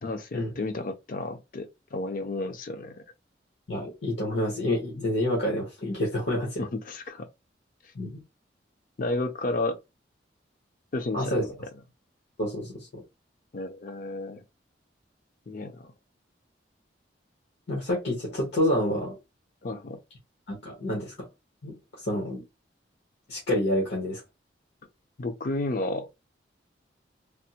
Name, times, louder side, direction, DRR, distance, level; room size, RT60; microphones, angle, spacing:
voice 1, 0.0-3.0 6.6-7.3 9.0-9.8 10.9-11.4 13.5-14.4 15.5-15.9 19.6-20.0 25.2-26.1, left 2 dB, 50° left, 0.5 m, -32 dB
voice 2, 3.7-6.7 7.9-8.2 11.1-11.5 12.4-13.0 17.7-19.2 20.5-21.1 21.6-21.8 22.0-22.4 23.3-24.2, left 1 dB, 80° left, 1.1 m, -28 dB
3.4 x 2.0 x 2.8 m
head